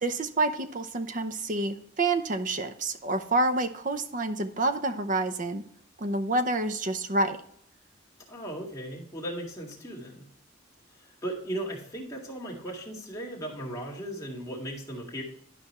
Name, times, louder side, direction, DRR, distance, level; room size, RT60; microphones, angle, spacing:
voice 1, 0.0-5.6 6.0-7.4, right 2 dB, 45° right, 9 dB, 0.7 m, -28 dB
voice 2, 8.3-10.3 11.0-15.2, right 1 dB, 20° left, -3 dB, 2.0 m, -37 dB
11.5 x 5.1 x 3.1 m, 0.67 s
head